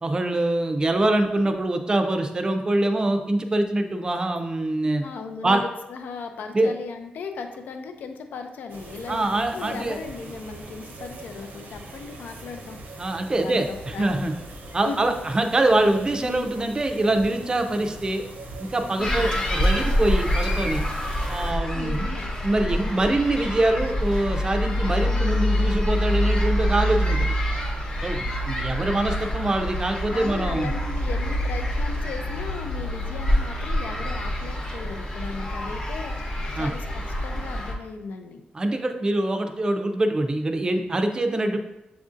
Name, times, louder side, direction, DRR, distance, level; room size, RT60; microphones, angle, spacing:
voice 1, 0.0-5.0 5.4-5.6 6.5-6.7 9.1-10.0 13.0-14.3 14.7-18.2 18.6-20.9 21.3-22.1 22.4-27.3 28.0-30.7 36.6-36.7 38.5-41.6, right 1 dB, 25° right, 5 dB, 0.4 m, -24 dB
voice 2, 5.0-12.8 13.3-14.2 14.9-15.0 16.2-16.5 19.0-19.4 21.7-22.3 22.6-22.9 30.1-38.4, left 5 dB, 85° left, 6 dB, 0.4 m, -37 dB
sound 1, 8.7-21.5, right 2 dB, 85° right, 0.8 m, -41 dB
sound 2, 19.0-37.7, equal, 30° left, 0.8 m, -26 dB
7.1 x 2.6 x 2.4 m, 0.95 s
wide cardioid pair, 110°, 3 cm